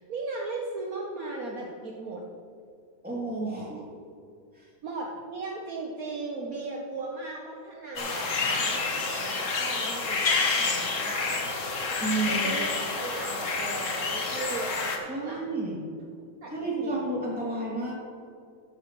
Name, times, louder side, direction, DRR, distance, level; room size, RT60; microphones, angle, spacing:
voice 1, 0.0-2.2 4.8-11.5 12.2-15.7 16.4-17.0, right 2 dB, 55° right, -1 dB, 1.4 m, -37 dB
voice 2, 3.0-3.8 4.5-4.7 12.0-12.5 15.1-15.8 16.5-17.9, right 2 dB, 5° right, -6 dB, 2.8 m, -31 dB
sound 1, 8.0-15.0, left 4 dB, 45° left, 1.4 m, -28 dB
13.5 x 10.5 x 3.2 m, 2.3 s
omnidirectional pair, 2.0 m